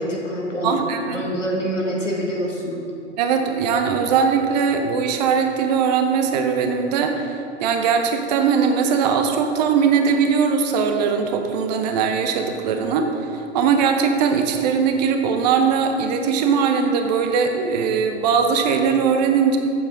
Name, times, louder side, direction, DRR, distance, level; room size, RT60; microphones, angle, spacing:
voice 1, 0.0-0.8 1.1-2.9, equal, 90° left, -2 dB, 1.8 m, -25 dB
voice 2, 0.6-1.2 3.2-7.3 7.6-13.0 13.5-19.6, right 6 dB, 35° right, 5 dB, 0.7 m, -20 dB
8.3 x 7.8 x 3.7 m, 2.6 s
figure-of-eight pair, 105°, 36 cm